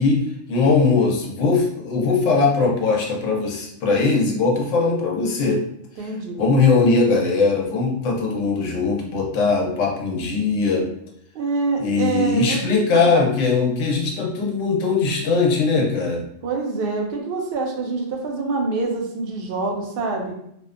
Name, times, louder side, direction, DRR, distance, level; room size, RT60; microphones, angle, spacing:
voice 1, 0.0-5.6 6.4-10.9 11.8-16.2, left 4 dB, 85° left, -1 dB, 1.0 m, -20 dB
voice 2, 6.0-6.4 11.3-12.7 12.9-13.2 16.4-20.3, right 3 dB, 60° right, 1 dB, 0.7 m, -25 dB
2.6 x 2.1 x 2.4 m, 0.74 s
omnidirectional pair, 1.3 m